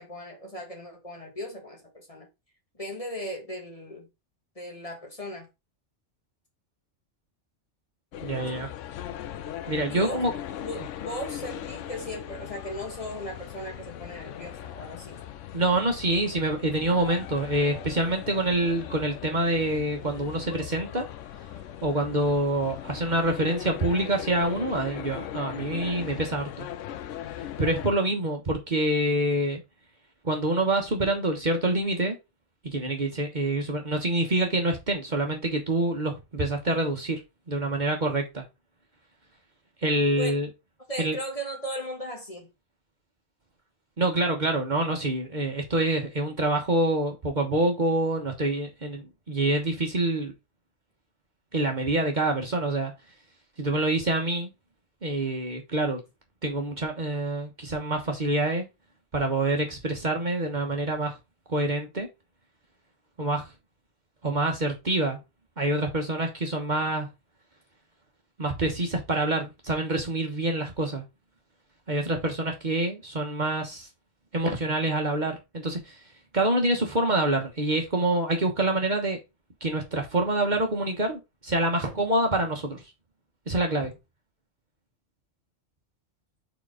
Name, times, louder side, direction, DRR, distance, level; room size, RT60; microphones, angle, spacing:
voice 1, 0.0-2.3 2.8-4.1 4.5-5.5 9.9-10.2 10.6-15.2 40.1-40.3 40.9-42.5, equal, 30° left, 1.6 m, -37 dB
sound 1, 8.1-27.9, left 11 dB, 85° left, 0.9 m, -39 dB
voice 2, 8.2-8.7 9.7-10.3 15.5-21.1 21.8-26.7 27.6-29.6 30.2-32.2 32.6-37.2 37.5-38.4 39.8-40.5 41.0-41.2 44.0-50.3 51.5-52.9 53.6-54.5 55.0-56.0 56.4-58.7 59.1-61.1 61.5-62.1 63.2-63.5 64.2-65.2 65.6-67.1 68.4-71.0 71.9-73.9 74.3-76.0 76.3-79.2 79.6-82.8 83.5-83.9, right 1 dB, 40° right, 1.3 m, -26 dB
4.6 x 4.4 x 4.8 m
omnidirectional pair, 1.2 m